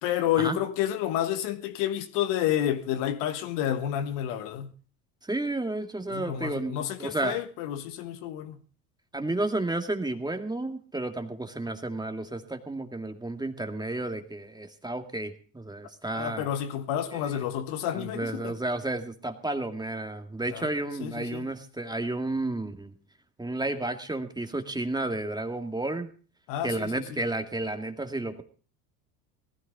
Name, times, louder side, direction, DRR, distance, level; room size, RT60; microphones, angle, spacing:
voice 1, 0.0-4.7 6.1-8.6 16.1-18.5 20.5-20.7 21.0-21.5 26.5-27.2, left 11 dB, 60° left, 1.6 m, -30 dB
voice 2, 5.2-7.4 9.1-16.5 17.1-17.4 17.9-22.9 23.4-26.1 26.6-28.4, right 2 dB, 10° right, 2.3 m, -32 dB
19.5 x 14.5 x 3.8 m
hypercardioid pair, 75°, 49 cm